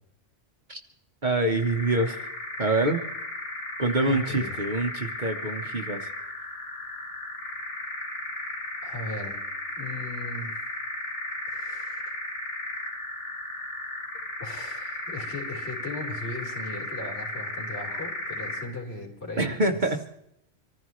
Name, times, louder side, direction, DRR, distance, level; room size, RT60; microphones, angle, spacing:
voice 1, 1.2-2.3 2.6-3.0 3.8-6.1 19.4-20.0, right 2 dB, 40° right, 4 dB, 1.2 m, -25 dB
sound 1, 1.4-18.8, left 1 dB, 35° left, 2.1 m, -35 dB
voice 2, 4.0-4.6 8.8-9.4 9.8-10.6 11.5-12.1 14.4-19.5 19.8-19.9, left 2 dB, 55° left, -2 dB, 4.5 m, -38 dB
25.5 x 15.0 x 3.1 m, 0.77 s
omnidirectional pair, 1.3 m